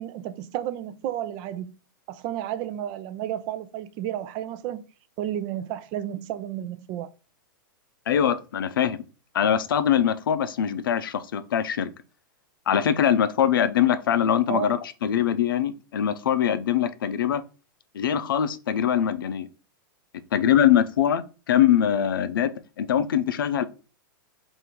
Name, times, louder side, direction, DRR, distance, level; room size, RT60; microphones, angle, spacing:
voice 1, 0.0-1.7 2.1-4.8 5.2-7.1 14.5-14.7, right 11 dB, 40° right, 0.4 m, -32 dB
voice 2, 8.1-9.0 9.3-11.9 12.7-17.4 17.9-19.5 20.3-22.5 22.8-23.7, left 9 dB, 85° left, 0.5 m, -23 dB
3.6 x 2.6 x 4.4 m
hypercardioid pair, 125°, 11 cm